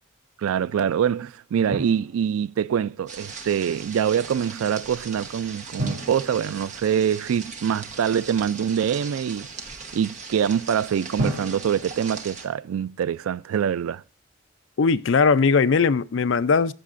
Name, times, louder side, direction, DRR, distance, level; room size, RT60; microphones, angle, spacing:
voice 1, 0.4-9.5 9.9-14.0, right 8 dB, 80° right, 0.3 m, -24 dB
Drum, 1.7-2.8 5.8-7.6 11.2-13.2, right 1 dB, 60° right, 3.7 m, -34 dB
sound 1, 3.1-12.5, right 4 dB, 35° right, 1.1 m, -39 dB
voice 2, 14.8-16.7, left 5 dB, 60° left, 0.4 m, -19 dB
14.0 x 6.4 x 2.5 m
head